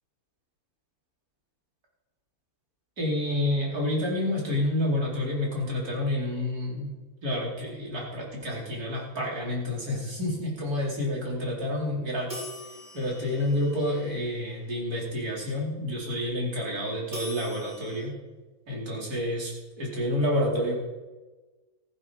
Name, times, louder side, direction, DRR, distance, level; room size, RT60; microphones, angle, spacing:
voice 1, 3.0-6.9 7.2-12.5 12.9-18.1 18.7-20.7, left 1 dB, 90° right, -3 dB, 4.7 m, -29 dB
sound 1, 12.3-14.5 17.1-18.0, left 1 dB, 40° right, 6.6 m, -42 dB
15.5 x 15.0 x 5.0 m, 1.2 s
omnidirectional pair, 1.6 m